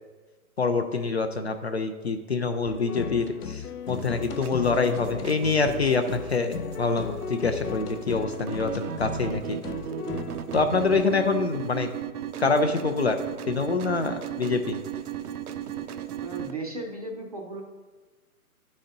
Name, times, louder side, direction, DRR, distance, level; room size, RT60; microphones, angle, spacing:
voice 1, 0.6-9.6 10.5-11.9 12.4-13.2 13.5-14.8, left 4 dB, 50° left, 7 dB, 0.5 m, -26 dB
sound 1, 2.6-11.0, left 5 dB, 90° left, 0.7 m, -36 dB
sound 2, 3.9-16.5, right 9 dB, 80° right, 0.7 m, -36 dB
voice 2, 16.2-17.6, right 2 dB, 25° right, 1 dB, 0.6 m, -35 dB
10.0 x 4.2 x 3.8 m, 1.3 s
hypercardioid pair, 165°, 45 cm